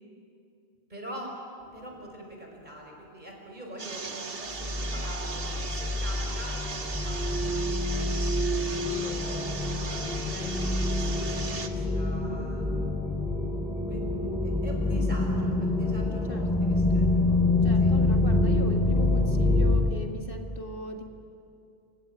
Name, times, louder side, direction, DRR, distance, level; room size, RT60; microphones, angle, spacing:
voice 1, 0.9-1.4 1.7-8.1 8.9-9.8 10.1-13.1 13.3-13.4 13.9-14.0 14.4-17.4 17.8-17.9, right 1 dB, 45° right, 0 dB, 5.6 m, -44 dB
sound 1, 3.8-11.7, right 4 dB, 65° right, 1.7 m, -37 dB
sound 2, 4.6-19.8, left 2 dB, ahead, 3.0 m, -26 dB
voice 2, 16.3-16.8 17.6-21.0, left 2 dB, 60° left, 3 dB, 2.0 m, -38 dB
29.0 x 16.5 x 9.3 m, 2.5 s
omnidirectional pair, 1.0 m